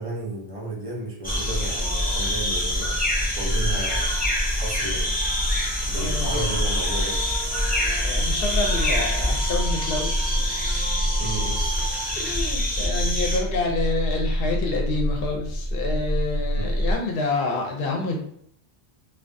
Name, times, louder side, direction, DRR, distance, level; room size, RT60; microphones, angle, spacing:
voice 1, 0.0-4.1 4.6-5.1 5.9-7.2 11.2-11.7 16.6-16.7, right 2 dB, 45° right, -2 dB, 0.5 m, -33 dB
sound 1, 1.2-13.4, equal, 10° left, 0.5 m, -25 dB
sound 2, 3.0-16.9, equal, 30° left, 0.9 m, -29 dB
sound 3, 5.2-12.0, right 2 dB, 80° right, 1.0 m, -41 dB
voice 2, 5.9-6.5 8.0-10.2 12.2-18.2, left 3 dB, 65° left, 0 dB, 0.7 m, -28 dB
2.2 x 2.2 x 2.5 m, 0.66 s
omnidirectional pair, 1.1 m